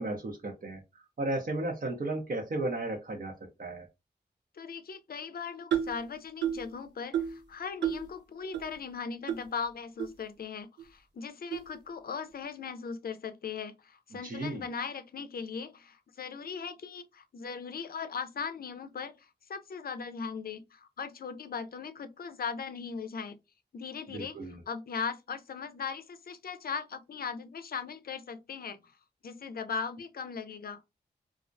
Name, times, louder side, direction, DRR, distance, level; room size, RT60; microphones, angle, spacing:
voice 1, 0.0-3.9 14.2-14.7 24.1-24.6, right 2 dB, 55° right, 0.7 m, -35 dB
voice 2, 4.5-23.4 23.7-24.4 24.7-28.9 29.2-30.8, left 6 dB, 60° left, 0.5 m, -39 dB
sound 1, 5.7-6.0 6.4-6.7 7.1-7.4 7.8-8.1 8.5-8.6 9.3-9.4 10.0-10.1 10.8-10.9 11.5-11.7, right 9 dB, 90° right, 0.5 m, -31 dB
2.4 x 2.0 x 2.5 m
cardioid pair, 45°, 18 cm